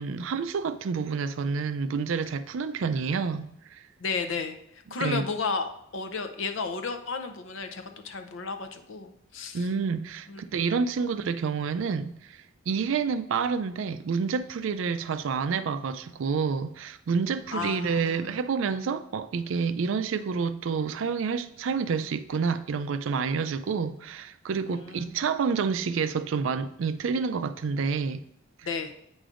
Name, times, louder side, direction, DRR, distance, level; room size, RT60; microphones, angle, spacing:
voice 1, 0.0-3.8 5.0-5.2 9.5-28.2 28.6-28.7, right 5 dB, 70° right, 0.4 m, -29 dB
voice 2, 4.0-9.7 10.3-10.4 17.5-18.3 24.6-25.1 28.6-28.9, left 4 dB, 70° left, 0.6 m, -33 dB
8.6 x 5.1 x 2.5 m
head